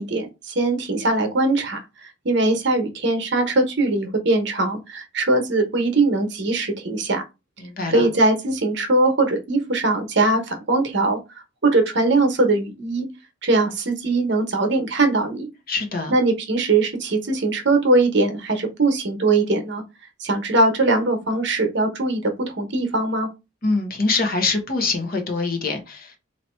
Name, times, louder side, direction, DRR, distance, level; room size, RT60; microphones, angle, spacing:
voice 1, 0.0-1.8 2.2-7.2 7.9-11.2 11.6-13.1 13.4-15.5 16.1-19.8 20.2-23.3, right 2 dB, 65° right, 1.0 m, -21 dB
voice 2, 7.6-8.1 15.7-16.1 23.6-26.2, left 3 dB, 50° left, 1.1 m, -24 dB
3.0 x 2.8 x 4.4 m
head